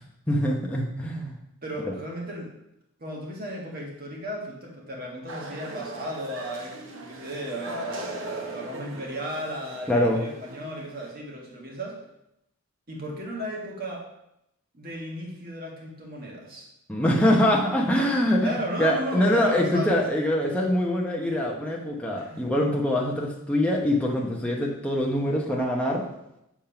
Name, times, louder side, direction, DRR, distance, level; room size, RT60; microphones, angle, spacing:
voice 1, 0.3-1.4 1.9-2.0 9.9-10.2 16.9-26.1, left 1 dB, 5° left, -2 dB, 0.8 m, -24 dB
voice 2, 1.6-2.5 3.0-12.0 12.9-14.0 14.7-16.7 18.4-19.9 22.1-22.6, right 1 dB, 45° right, -2 dB, 1.6 m, -35 dB
sound 1, 5.3-11.1, right 2 dB, 60° right, 0.9 m, -40 dB
7.2 x 3.6 x 5.7 m, 0.84 s
head